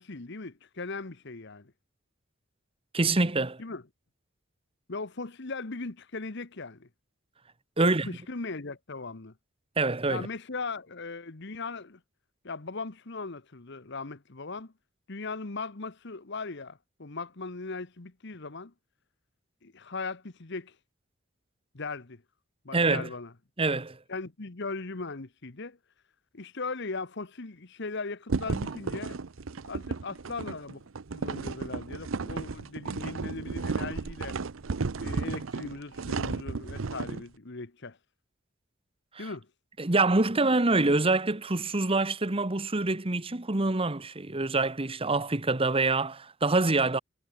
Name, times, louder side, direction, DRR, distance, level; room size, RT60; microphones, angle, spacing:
voice 1, 0.0-1.7 3.6-3.8 4.9-6.9 7.8-9.3 10.1-12.0 12.4-14.7 15.1-18.7 19.6-20.8 21.7-22.2 22.6-23.3 24.1-25.8 26.3-29.2 29.6-30.8 31.1-34.4 35.0-38.0 39.2-39.5, left 3 dB, 60° left, 1.3 m, -38 dB
voice 2, 2.9-3.6 7.8-8.1 9.8-10.3 22.7-23.1 23.6-24.0 39.1-39.3 39.8-47.0, right 3 dB, 30° right, 1.2 m, -26 dB
sound 1, 28.3-37.2, right 4 dB, 80° right, 0.7 m, -34 dB
head